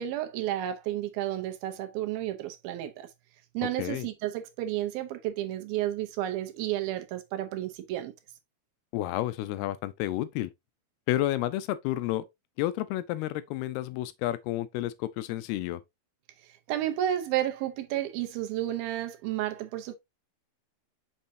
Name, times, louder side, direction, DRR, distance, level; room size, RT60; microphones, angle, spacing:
voice 1, 0.0-3.1 3.5-8.1 16.7-20.0, right 12 dB, 75° right, 2.5 m, -31 dB
voice 2, 8.9-10.5 11.1-12.3 12.6-15.8, left 14 dB, 85° left, 2.6 m, -30 dB
6.4 x 5.6 x 2.7 m
omnidirectional pair, 4.5 m